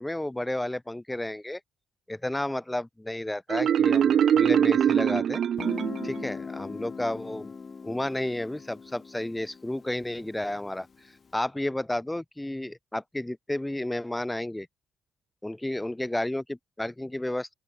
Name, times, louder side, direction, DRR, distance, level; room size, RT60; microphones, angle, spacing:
voice 1, 0.0-1.6 2.1-5.4 6.0-7.5 7.8-10.9 11.3-14.7 15.4-17.5, left 1 dB, 10° left, 2.2 m, -32 dB
Marimba xylophone, 3.5-6.3, right 9 dB, 60° right, 0.4 m, -23 dB
Guitar, 5.6-11.1, left 5 dB, 35° left, 5.9 m, -40 dB
open air
cardioid pair, 90°, 0 cm